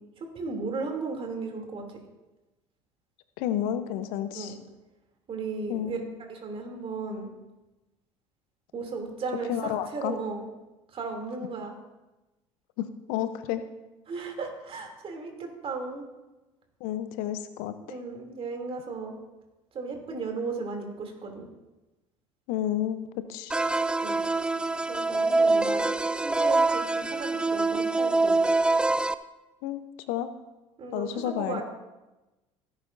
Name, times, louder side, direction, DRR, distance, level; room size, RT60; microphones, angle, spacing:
voice 1, 0.0-2.0 4.3-4.6 5.3-6.0 6.3-7.3 8.7-10.4 10.9-11.8 14.1-16.1 17.8-19.2 19.7-21.5 24.0-24.2 24.9-25.9 26.2-28.6 30.8-31.6, right 4 dB, 35° right, 2 dB, 2.9 m, -35 dB
voice 2, 3.4-4.6 5.7-6.0 9.5-10.2 12.8-13.6 16.8-18.0 22.5-23.6 29.6-29.8 30.1-30.3 30.9-31.6, left 11 dB, 55° left, 11 dB, 0.8 m, -31 dB
sound 1, 23.5-29.1, right 3 dB, 5° right, 0.4 m, -25 dB
17.0 x 9.1 x 2.7 m, 1.1 s
figure-of-eight pair, 65°, 16 cm